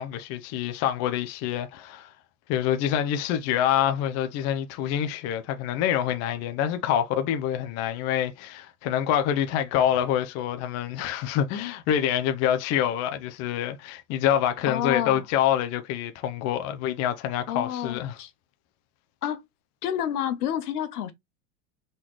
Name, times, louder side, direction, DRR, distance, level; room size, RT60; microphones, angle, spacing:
voice 1, 0.0-2.1 2.5-18.2, left 10 dB, 35° left, 0.7 m, -26 dB
voice 2, 14.7-15.2 17.5-18.3 19.2-19.4 19.8-21.1, left 10 dB, 85° left, 1.1 m, -29 dB
4.1 x 3.8 x 3.1 m
supercardioid pair, 135°, 44 cm